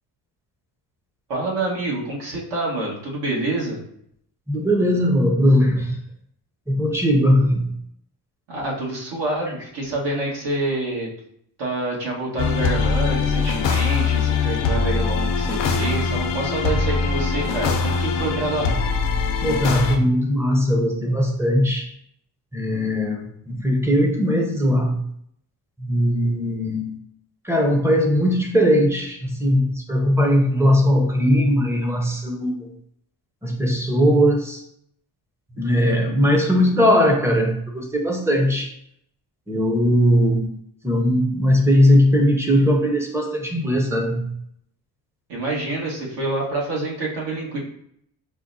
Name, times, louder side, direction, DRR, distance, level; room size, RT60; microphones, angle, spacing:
voice 1, 1.3-3.8 8.5-11.1 11.6-18.7 45.3-47.6, right 2 dB, 75° right, -3 dB, 1.5 m, -27 dB
voice 2, 4.5-6.0 6.7-7.7 19.4-21.9 22.5-25.1 25.8-27.0 27.4-32.7 33.4-34.6 35.6-38.7 39.5-40.5 40.8-44.3, equal, 5° right, 2 dB, 0.6 m, -19 dB
sound 1, 12.4-20.0, left 5 dB, 80° left, 0.6 m, -22 dB
5.0 x 2.2 x 2.6 m, 0.70 s
cardioid pair, 95°, 42 cm